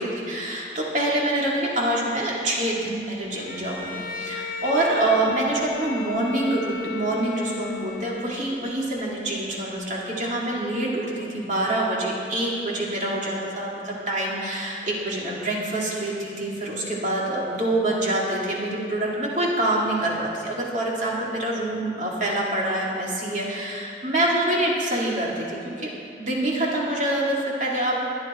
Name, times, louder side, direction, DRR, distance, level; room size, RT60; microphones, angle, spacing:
voice 1, 0.0-25.9 26.2-28.0, right 1 dB, 40° right, -4 dB, 2.6 m, -26 dB
Bowed string instrument, 3.4-8.6, left 3 dB, 50° left, 1.2 m, -34 dB
22.0 x 8.8 x 4.4 m, 2.5 s
head